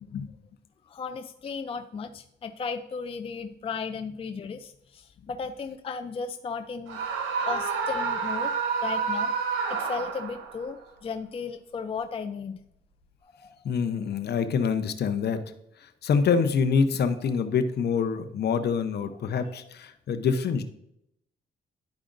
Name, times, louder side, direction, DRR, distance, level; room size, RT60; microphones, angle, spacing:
voice 1, 0.8-7.0 7.5-8.5 8.8-9.3 9.7-12.6 13.2-13.6 19.4-19.6, left 5 dB, 30° left, 8 dB, 0.4 m, -35 dB
Screaming, 6.9-10.6, right 5 dB, 90° right, 1.0 m, -29 dB
voice 2, 13.6-15.4 16.0-20.6, left 6 dB, 55° left, 10 dB, 0.8 m, -25 dB
11.5 x 4.9 x 2.6 m, 0.78 s
cardioid pair, 90°, 20 cm